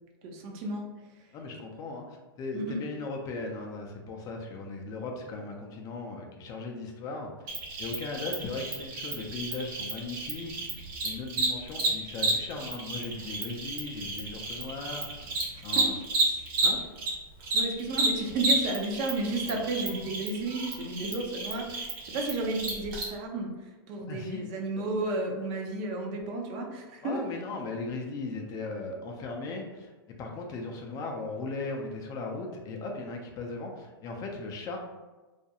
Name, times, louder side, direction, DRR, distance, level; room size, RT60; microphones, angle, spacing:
voice 1, 0.2-1.3 2.5-2.8 15.5-15.9 17.5-27.2, right 2 dB, 40° right, 1 dB, 0.5 m, -33 dB
voice 2, 1.3-7.5 7.8-15.3 15.6-15.9 16.6-16.8 24.1-24.4 27.0-29.9 30.2-34.8, left 3 dB, 30° left, 2 dB, 0.4 m, -37 dB
Cricket, 7.5-17.1 17.4-23.0, right 3 dB, 55° right, 1.0 m, -31 dB
2.4 x 2.2 x 2.8 m, 1.2 s
hypercardioid pair, 125°, 12 cm